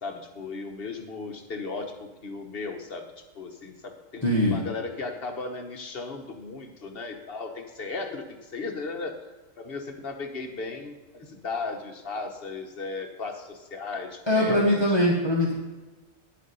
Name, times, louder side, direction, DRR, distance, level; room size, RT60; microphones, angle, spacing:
voice 1, 0.0-3.1 3.3-9.2 9.6-15.0, left 3 dB, 45° left, 4 dB, 1.3 m, -36 dB
voice 2, 4.2-4.6 14.3-15.5, left 1 dB, 20° left, -5 dB, 1.4 m, -22 dB
10.5 x 7.4 x 5.4 m, 1.2 s
omnidirectional pair, 1.4 m